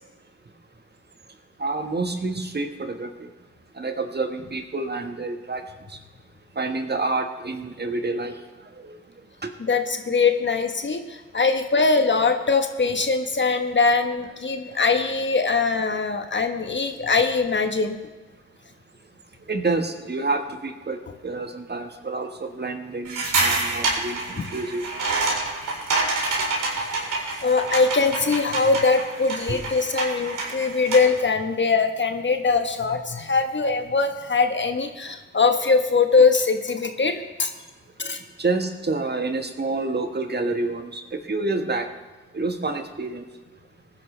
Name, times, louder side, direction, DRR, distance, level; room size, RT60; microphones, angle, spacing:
voice 1, 1.6-3.1 3.7-5.6 6.5-8.4 8.8-9.0 9.4-9.5 19.5-24.8 29.5-29.6 38.4-41.9 42.3-43.2, right 3 dB, 30° right, 6 dB, 1.6 m, -28 dB
voice 2, 9.6-18.0 27.4-37.5 38.0-38.2, left 4 dB, 35° left, 7 dB, 1.3 m, -22 dB
sound 1, 23.0-31.2, right 3 dB, 65° right, 4.2 m, -27 dB
19.0 x 10.5 x 3.4 m, 1.2 s
hypercardioid pair, 45°, 33 cm